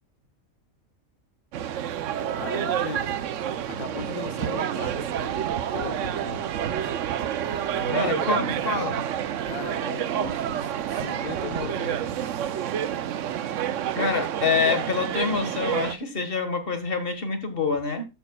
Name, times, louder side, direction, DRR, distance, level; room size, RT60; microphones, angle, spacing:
sound 1, 1.5-15.9, right 10 dB, 65° right, 1.0 m, -29 dB
voice 1, 2.4-3.3 3.7-6.5 7.8-8.6 9.5-12.3, left 5 dB, 90° left, 1.7 m, -37 dB
voice 2, 7.9-9.0 13.9-18.1, left 4 dB, 40° left, 1.6 m, -26 dB
12.0 x 9.0 x 2.2 m
omnidirectional pair, 1.5 m